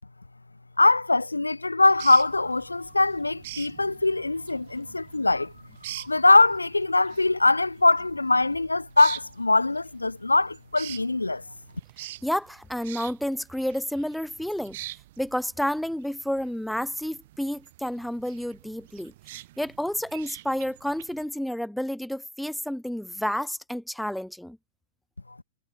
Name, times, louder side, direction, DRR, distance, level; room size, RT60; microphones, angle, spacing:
voice 1, 0.8-5.5 6.0-11.4, left 2 dB, 85° left, 0.4 m, -22 dB
sound 1, 1.8-21.3, right 16 dB, 55° right, 7.7 m, -45 dB
voice 2, 12.2-14.8 15.2-19.1 19.6-24.6, equal, ahead, 2.2 m, -30 dB
figure-of-eight pair, 100°, 0 cm